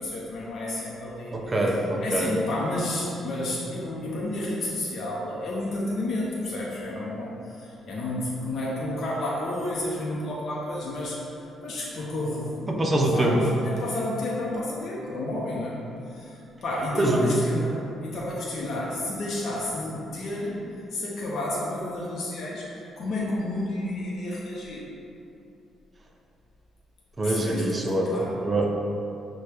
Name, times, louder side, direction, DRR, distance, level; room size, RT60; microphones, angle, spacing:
voice 1, 0.0-1.4 2.0-11.2 11.6-24.8 27.2-28.3, left 1 dB, 60° left, -5 dB, 0.6 m, -31 dB
voice 2, 1.3-2.3 12.7-13.4 16.9-17.4 27.2-28.7, right 1 dB, 25° right, 0 dB, 0.6 m, -24 dB
5.8 x 2.2 x 3.3 m, 2.7 s
cardioid pair, 90°, 0 cm